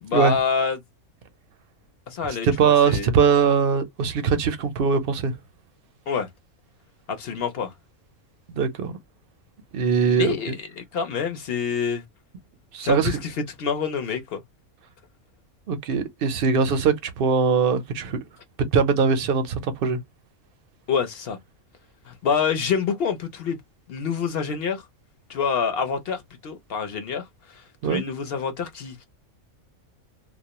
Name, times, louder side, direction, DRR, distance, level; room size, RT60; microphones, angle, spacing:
voice 1, 0.0-0.8 2.1-3.1 6.1-6.3 7.1-7.7 10.1-12.0 12.8-14.4 20.9-21.4 22.1-23.6 23.9-24.8 25.3-29.0, left 6 dB, 60° left, 0.7 m, -27 dB
voice 2, 2.4-5.3 8.5-8.9 9.7-10.4 12.7-13.2 15.7-18.2 18.7-20.0 27.8-28.0, right 6 dB, 60° right, 0.6 m, -21 dB
2.3 x 2.1 x 2.8 m
omnidirectional pair, 1.4 m